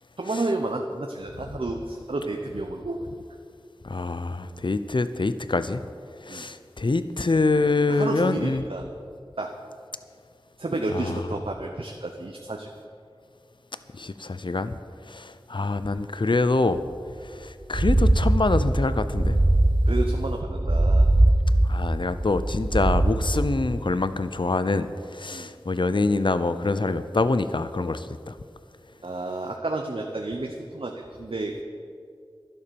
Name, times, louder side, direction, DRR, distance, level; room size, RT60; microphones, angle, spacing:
voice 1, 0.2-3.1 6.3-6.5 7.9-8.9 9.4-9.5 10.6-12.7 19.9-21.1 25.3-25.5 29.0-31.6, right 2 dB, 80° right, 2 dB, 0.9 m, -31 dB
voice 2, 3.8-5.8 6.2-8.6 10.9-11.2 13.9-14.7 15.1-16.8 17.2-19.4 21.6-28.3, left 3 dB, 60° left, 12 dB, 0.6 m, -25 dB
sound 1, 16.8-16.9 17.1-17.2 17.6-23.8, right 1 dB, 25° right, 0.6 m, -21 dB
12.0 x 11.0 x 6.9 m, 2.3 s
wide cardioid pair, 40°, 9 cm